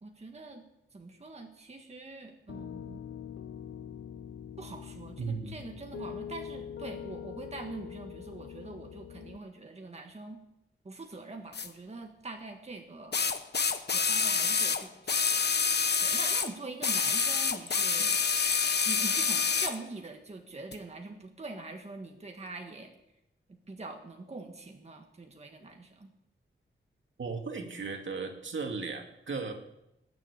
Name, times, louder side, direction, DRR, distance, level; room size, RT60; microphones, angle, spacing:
voice 1, 0.0-0.6 0.9-3.0 4.6-10.4 10.8-13.3 13.9-15.5 16.0-18.2 18.9-22.9 23.7-26.1, right 3 dB, 30° right, 3 dB, 1.6 m, -44 dB
Piano, 2.5-9.4, left 8 dB, 80° left, 0.8 m, -43 dB
voice 2, 5.2-5.6 27.2-29.5, right 4 dB, 70° right, 2 dB, 2.4 m, -36 dB
sound 1, 11.5-11.7 13.1-16.5 16.8-19.8 20.7-20.8, left 5 dB, 55° left, 1.0 m, -27 dB
20.0 x 7.0 x 8.5 m, 0.86 s
wide cardioid pair, 105°, 20 cm